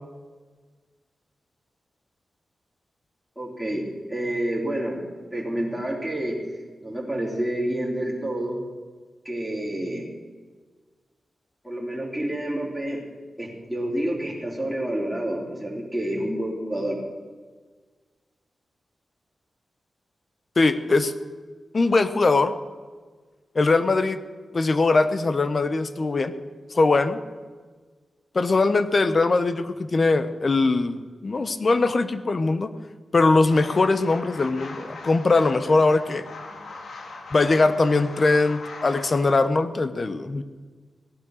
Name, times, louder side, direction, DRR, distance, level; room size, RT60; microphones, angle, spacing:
voice 1, 3.4-8.6 9.2-10.1 11.6-13.0 13.4-17.0, right 1 dB, ahead, -4 dB, 3.6 m, -29 dB
voice 2, 20.6-21.1 21.7-22.5 23.5-24.2 24.5-26.3 26.7-27.2 28.3-32.7 33.1-36.2 37.3-40.4, left 3 dB, 45° left, 12 dB, 1.0 m, -21 dB
sound 1, 33.5-39.3, left 3 dB, 80° left, 2.0 m, -40 dB
16.0 x 11.0 x 6.5 m, 1.5 s
wide cardioid pair, 90°, 0 cm